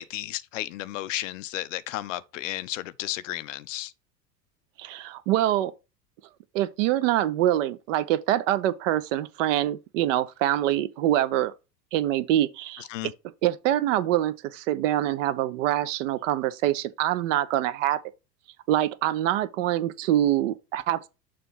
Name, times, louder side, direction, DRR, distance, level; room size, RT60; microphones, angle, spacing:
voice 1, 0.0-3.9 12.9-13.1, left 15 dB, 50° left, 0.5 m, -33 dB
voice 2, 4.8-5.7 6.5-11.5 11.9-12.9 13.4-18.0 18.7-21.1, right 13 dB, 50° right, 0.7 m, -25 dB
6.8 x 3.0 x 5.4 m
figure-of-eight pair, 90°, 50 cm